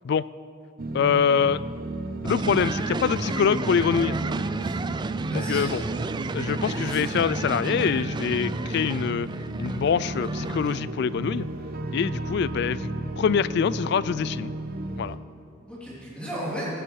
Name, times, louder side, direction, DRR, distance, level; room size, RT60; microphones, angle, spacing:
sound 1, 0.8-15.2, right 2 dB, 45° right, 0.8 m, -33 dB
voice 1, 0.9-1.6 2.2-4.2 5.3-5.8 6.3-9.3 9.6-11.5 11.9-12.9 13.2-14.5 15.0-15.2, left 6 dB, 55° left, 18 dB, 0.3 m, -24 dB
sound 2, 2.2-10.8, right 3 dB, 20° right, 0.4 m, -32 dB
voice 2, 5.3-5.7 6.3-7.0 15.7-16.7, equal, 5° left, -8 dB, 3.3 m, -36 dB
17.0 x 14.0 x 4.7 m, 2.5 s
head